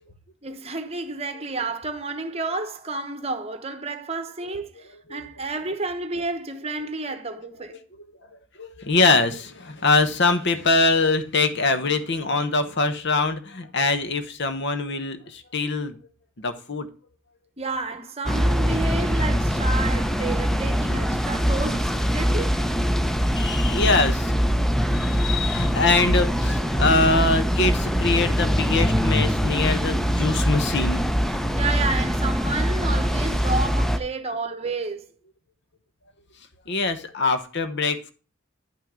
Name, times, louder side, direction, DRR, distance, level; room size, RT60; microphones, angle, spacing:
voice 1, 0.4-7.8 17.6-22.6 31.5-35.1, right 3 dB, 30° right, 1.0 m, -31 dB
voice 2, 8.6-16.0 16.4-16.9 23.3-24.3 24.9-31.2 36.7-38.1, left 3 dB, 55° left, 1.0 m, -23 dB
sound 1, 18.3-34.0, equal, ahead, 0.5 m, -23 dB
10.5 x 5.9 x 3.7 m
head